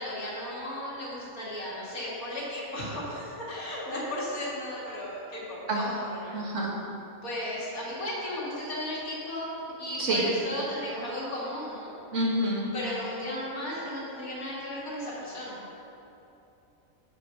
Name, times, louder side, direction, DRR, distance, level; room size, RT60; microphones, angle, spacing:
voice 1, 0.0-6.4 7.2-9.5 9.8-11.9 12.7-15.7, left 1 dB, 85° left, -6 dB, 2.7 m, -35 dB
voice 2, 6.3-6.7 10.0-10.3 12.1-12.7, right 1 dB, 60° right, -2 dB, 1.8 m, -27 dB
7.9 x 7.4 x 5.5 m, 3.0 s
omnidirectional pair, 1.5 m